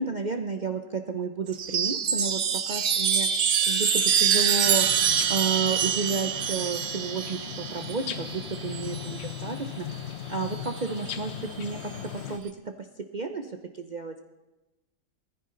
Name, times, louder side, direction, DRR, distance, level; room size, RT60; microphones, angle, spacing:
voice 1, 0.0-2.4 2.7-4.9 5.3-10.0 10.3-12.5 13.1-14.1, right 4 dB, 80° right, 5 dB, 0.4 m, -32 dB
Chime, 1.5-9.3 10.5-11.2, right 7 dB, 60° right, 1.2 m, -26 dB
sound 1, 4.6-12.4, left 10 dB, 65° left, 0.6 m, -38 dB
19.0 x 14.5 x 3.8 m, 1.1 s
omnidirectional pair, 1.8 m